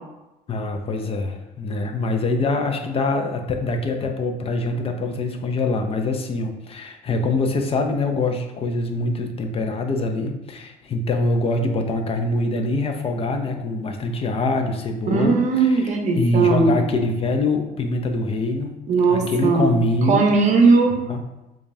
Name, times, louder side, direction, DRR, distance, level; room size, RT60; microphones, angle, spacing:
voice 1, 0.5-15.8 16.2-18.7 19.1-20.3 21.1-21.2, left 2 dB, 35° left, 5 dB, 0.5 m, -24 dB
voice 2, 15.1-16.8 18.9-19.8 20.1-21.0, right 4 dB, 45° right, 3 dB, 0.7 m, -18 dB
4.9 x 2.4 x 2.6 m, 0.99 s
cardioid pair, 110°, 17 cm